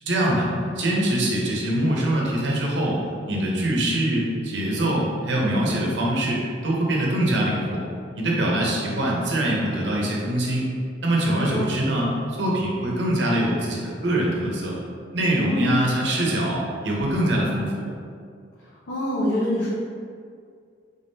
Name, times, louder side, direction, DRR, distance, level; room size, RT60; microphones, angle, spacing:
voice 1, 0.0-3.0 3.3-7.8 8.1-10.7 11.0-14.8 15.1-17.8, right 1 dB, 80° right, -3 dB, 0.8 m, -23 dB
voice 2, 15.4-15.8 18.6-19.7, left 1 dB, 65° left, -8 dB, 0.7 m, -26 dB
3.6 x 3.5 x 2.7 m, 2.2 s
head